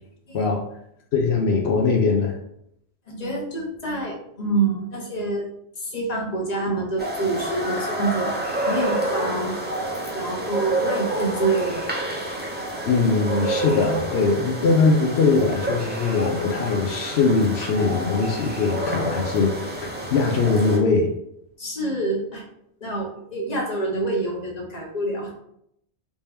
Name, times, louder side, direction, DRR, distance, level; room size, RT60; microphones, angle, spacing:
voice 1, 1.1-2.4 12.9-21.1, left 4 dB, 70° left, 2 dB, 0.8 m, -21 dB
voice 2, 3.1-5.5 5.8-8.4 8.7-9.6 10.1-11.9 21.6-22.4 22.8-25.3, right 2 dB, 40° left, -1 dB, 0.9 m, -27 dB
sound 1, 7.0-20.8, right 1 dB, 15° right, 0.4 m, -28 dB
3.3 x 2.8 x 3.3 m, 0.74 s
omnidirectional pair, 1.2 m